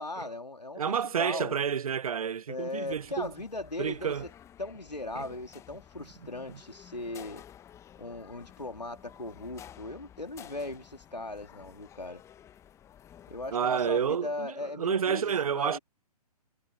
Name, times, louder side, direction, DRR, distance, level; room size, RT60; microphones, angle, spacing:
voice 1, 0.0-1.6 2.5-4.1 4.6-7.4 8.0-12.2 13.3-15.8, left 2 dB, 90° left, 3.4 m, -38 dB
voice 2, 0.8-3.3 3.8-4.3 5.1-5.3 6.5-6.6 13.5-15.8, right 7 dB, 60° right, 1.0 m, -30 dB
sound 1, 2.9-13.6, left 10 dB, 15° left, 1.4 m, -53 dB
figure-of-eight pair, 125°, 21 cm